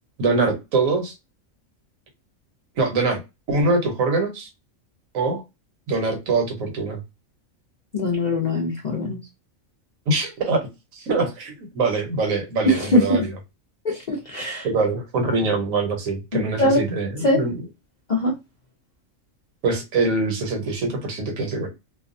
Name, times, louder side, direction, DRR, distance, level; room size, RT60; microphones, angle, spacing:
voice 1, 0.2-1.1 2.8-3.2 3.5-4.5 5.1-5.4 5.9-7.0 10.1-10.7 11.0-13.3 14.6-17.5 19.6-21.7, right 3 dB, 80° right, 1.2 m, -23 dB
voice 2, 7.9-9.2 12.7-13.3 13.8-14.7 16.3-16.8 17.2-17.4 18.1-18.3, left 1 dB, 55° left, 0.5 m, -21 dB
2.6 x 2.2 x 2.5 m
omnidirectional pair, 1.4 m